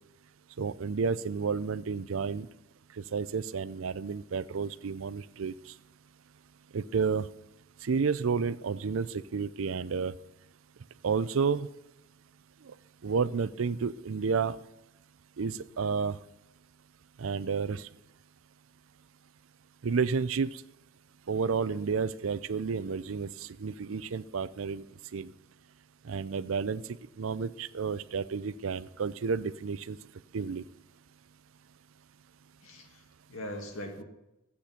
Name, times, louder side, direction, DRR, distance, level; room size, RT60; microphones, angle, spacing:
voice 1, 0.6-2.5 3.1-5.5 6.7-7.3 7.8-10.1 11.0-11.7 13.0-14.6 15.4-16.2 17.2-17.9 19.8-20.6 21.3-24.8 25.1-25.3 26.0-26.8 27.2-30.0 30.3-30.6, right 5 dB, 75° right, 17 dB, 0.5 m, -31 dB
voice 2, 32.6-34.0, left 1 dB, 75° left, 2 dB, 2.3 m, -41 dB
13.5 x 8.5 x 5.8 m, 0.90 s
head